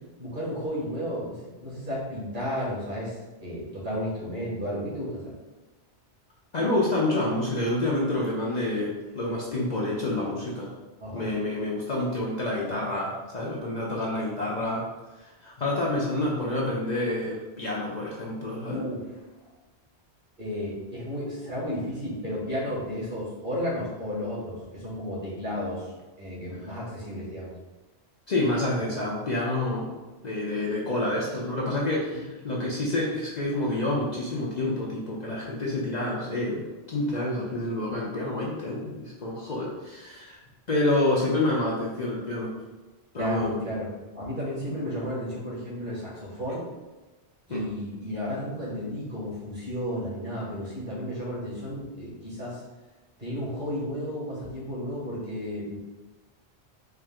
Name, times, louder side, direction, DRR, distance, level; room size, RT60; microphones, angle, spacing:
voice 1, 0.2-5.4 11.0-11.4 18.7-19.1 20.4-25.9 26.2-27.5 32.1-32.3 43.2-43.9 44.1-46.6 47.5-52.6 53.2-55.8, equal, 45° right, -7 dB, 1.8 m, -33 dB
voice 2, 6.5-10.7 11.1-14.9 15.2-18.8 28.3-29.9 30.2-40.4 40.7-42.5 43.1-43.5 47.5-47.7, left 1 dB, 45° left, -5 dB, 0.7 m, -28 dB
4.6 x 2.5 x 3.6 m, 1.2 s
omnidirectional pair, 1.1 m